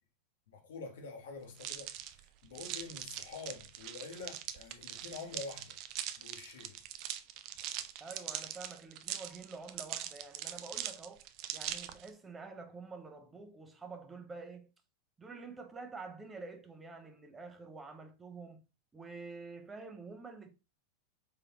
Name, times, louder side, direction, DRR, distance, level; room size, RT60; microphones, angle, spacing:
voice 1, 0.5-5.8 6.2-6.8, left 4 dB, 75° left, 1.1 m, -47 dB
sound 1, 1.6-12.1, right 11 dB, 50° right, 0.4 m, -42 dB
voice 2, 8.0-11.2 11.5-14.7 15.2-18.6 18.9-20.6, right 4 dB, 15° right, 0.7 m, -48 dB
3.7 x 3.4 x 2.9 m
hypercardioid pair, 100°, 0 cm